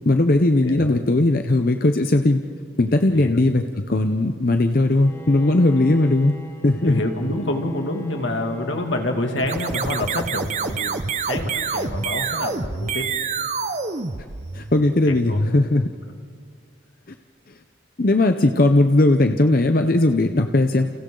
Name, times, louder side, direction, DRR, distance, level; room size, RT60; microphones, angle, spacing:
voice 1, 0.1-2.4 2.8-6.4 6.6-7.0 14.5-15.9 18.0-20.9, left 2 dB, 50° left, 7 dB, 0.7 m, -18 dB
voice 2, 0.6-1.0 3.1-3.7 5.9-6.1 6.8-13.1 15.0-15.4, left 1 dB, 85° left, 3 dB, 2.5 m, -28 dB
Bowed string instrument, 4.8-10.2, left 1 dB, 15° left, 1.9 m, -39 dB
sound 1, 9.4-14.8, right 5 dB, 35° right, 0.7 m, -27 dB
30.0 x 29.5 x 3.9 m, 2.1 s
head